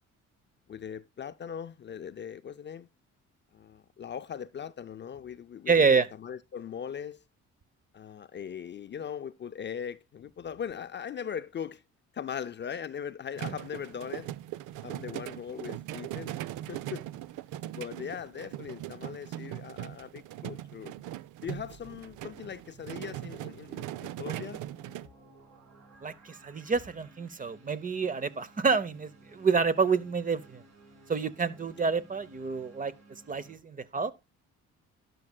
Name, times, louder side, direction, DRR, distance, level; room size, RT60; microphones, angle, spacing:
voice 1, 0.7-2.9 3.5-7.2 7.9-11.8 12.1-14.3 14.8-16.3 16.7-17.1 17.7-20.9 21.4-24.6, left 8 dB, 40° left, 0.4 m, -40 dB
voice 2, 5.7-6.1 26.0-30.6 31.1-32.9 33.3-34.1, right 5 dB, 25° right, 0.7 m, -28 dB
sound 1, 13.4-25.1, right 13 dB, 80° right, 0.5 m, -40 dB
sound 2, 21.5-33.6, right 2 dB, 60° right, 3.9 m, -57 dB
12.0 x 11.0 x 2.3 m
cardioid pair, 90°, 30 cm